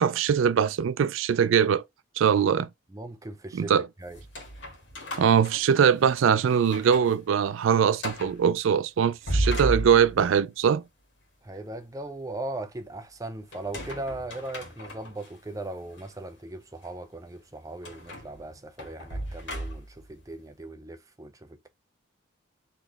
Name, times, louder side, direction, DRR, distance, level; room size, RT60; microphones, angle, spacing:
voice 1, 0.0-1.8 2.2-2.7 3.5-3.8 5.2-10.8, right 7 dB, 75° right, 0.4 m, -22 dB
voice 2, 2.9-4.2 11.4-21.7, right 2 dB, 15° right, 0.5 m, -38 dB
sound 1, 4.1-6.2 6.6-7.2 7.5-7.6 8.0-8.4 9.0-10.4 13.5-15.3 15.9-16.1 17.8-20.1, right 1 dB, 65° left, 1.7 m, -34 dB
4.2 x 3.1 x 3.9 m
head